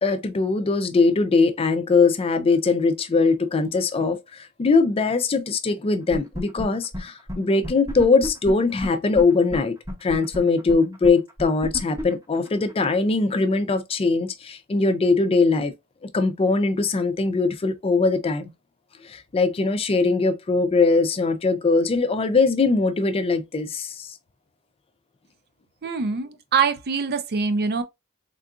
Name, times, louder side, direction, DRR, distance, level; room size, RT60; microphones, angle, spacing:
voice 1, 0.0-15.7 16.1-18.5 19.0-24.1, left 4 dB, 25° left, 0.4 m, -21 dB
sound 1, 6.1-6.6 6.9-7.0 7.3-7.4 7.6-9.2 9.5-9.6 9.9-12.8, equal, 15° right, 0.7 m, -31 dB
voice 2, 25.8-27.8, right 5 dB, 45° right, 0.5 m, -24 dB
3.7 x 2.4 x 2.4 m
head